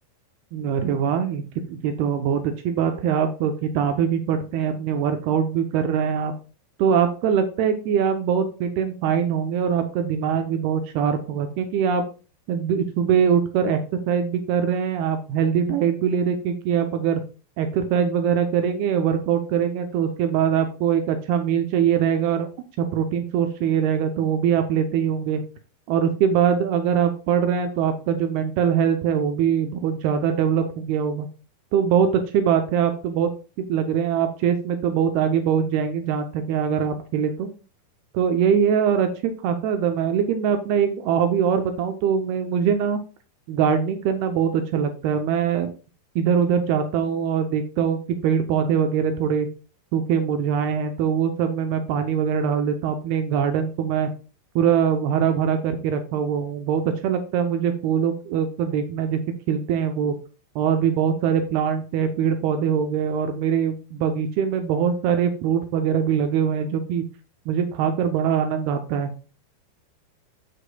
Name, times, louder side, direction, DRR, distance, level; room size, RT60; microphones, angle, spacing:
voice 1, 0.5-1.4 1.7-6.3 6.8-12.0 12.5-13.8 14.1-17.2 17.6-22.5 22.8-25.4 25.9-31.3 31.7-32.1 32.3-33.3 33.6-37.5 38.1-43.0 43.5-45.7 46.2-49.5 49.9-54.1 54.6-59.2 59.5-60.1 60.6-67.0 67.5-69.1, right 7 dB, 80° right, 7 dB, 2.3 m, -22 dB
13.0 x 5.1 x 2.2 m, 0.34 s
omnidirectional pair, 5.3 m